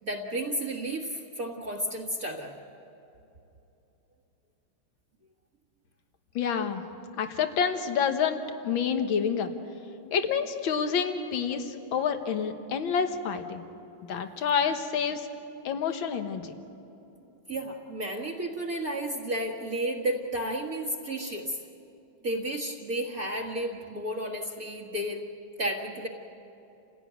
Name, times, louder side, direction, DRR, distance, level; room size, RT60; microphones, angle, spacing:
voice 1, 0.0-2.5 17.5-21.6 22.2-25.2 25.6-26.1, right 1 dB, 40° right, -3 dB, 1.9 m, -32 dB
voice 2, 6.4-6.8 7.2-9.5 10.1-13.6 14.1-15.3 15.6-16.5, left 7 dB, 65° left, 7 dB, 2.0 m, -28 dB
28.5 x 16.5 x 9.3 m, 3.0 s
omnidirectional pair, 2.4 m